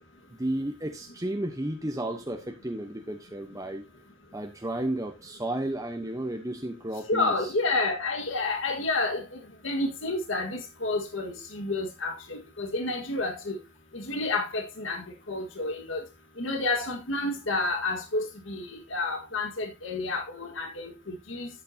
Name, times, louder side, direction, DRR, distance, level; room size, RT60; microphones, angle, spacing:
voice 1, 0.4-3.8 4.3-7.5, right 1 dB, 15° right, 1.0 m, -33 dB
voice 2, 7.1-13.6 13.9-16.0 16.4-21.5, left 2 dB, 65° left, 1.8 m, -30 dB
12.0 x 8.6 x 2.8 m
head